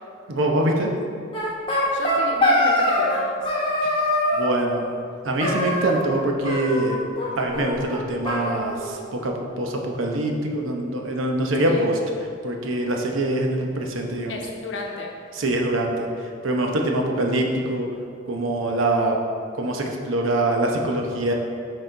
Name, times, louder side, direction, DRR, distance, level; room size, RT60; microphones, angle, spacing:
voice 1, 0.3-0.9 3.8-4.8 5.2-7.0 7.4-12.0 12.4-14.4 15.3-17.9 18.3-19.2 19.5-21.3, right 1 dB, 85° right, 1 dB, 0.8 m, -24 dB
sound 1, 1.3-3.2 3.5-4.5 5.4-6.2 6.4-7.3 7.5-7.6 7.9-8.0 8.3-9.3, left 1 dB, 25° left, 1.1 m, -23 dB
voice 2, 1.9-3.4 11.7-11.9 14.3-15.1, left 1 dB, 70° left, 1 dB, 0.9 m, -32 dB
6.5 x 4.3 x 4.5 m, 2.3 s
head